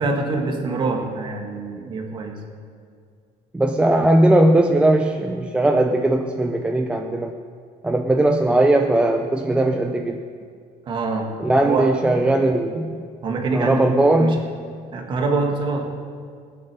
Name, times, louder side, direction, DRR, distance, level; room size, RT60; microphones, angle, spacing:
voice 1, 0.0-2.4 10.9-11.4 11.6-11.9 13.2-14.4 14.9-15.9, right 3 dB, 35° right, 3 dB, 1.8 m, -25 dB
voice 2, 3.5-7.3 7.8-10.2 11.4-13.0 13.5-14.5, right 1 dB, 5° right, 4 dB, 0.5 m, -18 dB
20.0 x 7.9 x 6.8 m, 2.2 s
cardioid pair, 170°, 15 cm